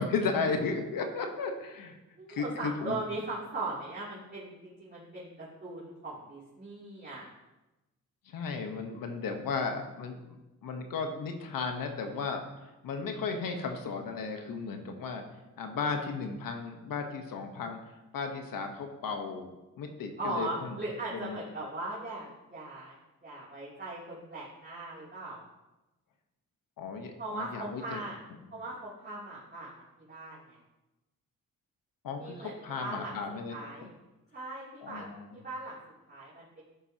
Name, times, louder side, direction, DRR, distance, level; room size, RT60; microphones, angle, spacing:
voice 1, 0.0-2.0 2.3-3.0 8.3-10.4 10.6-12.4 12.8-15.2 15.6-17.8 18.1-20.8 21.1-21.4 26.8-28.0 32.0-33.9 34.8-35.3, left 4 dB, 80° left, 5 dB, 1.2 m, -35 dB
voice 2, 2.2-7.3 20.2-23.0 23.2-25.4 27.2-28.2 28.5-30.6 32.2-33.1 33.5-33.9 34.3-35.1 35.3-35.8 36.1-36.6, right 2 dB, 30° right, -8 dB, 3.0 m, -39 dB
12.0 x 7.1 x 2.9 m, 1.0 s
cardioid pair, 70°, 34 cm